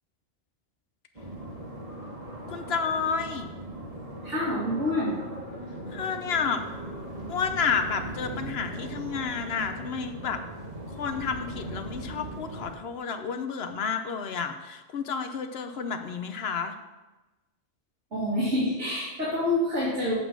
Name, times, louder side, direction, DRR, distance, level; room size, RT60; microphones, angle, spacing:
sound 1, 1.2-12.8, right 1 dB, 35° right, 1.5 m, -39 dB
voice 1, 2.5-3.5 5.9-6.6 7.3-10.4 10.9-16.8, left 6 dB, 65° left, 7 dB, 1.0 m, -30 dB
voice 2, 4.2-5.2 18.1-20.2, left 1 dB, 85° right, -9 dB, 2.6 m, -27 dB
8.1 x 5.1 x 6.1 m, 1.1 s
omnidirectional pair, 1.2 m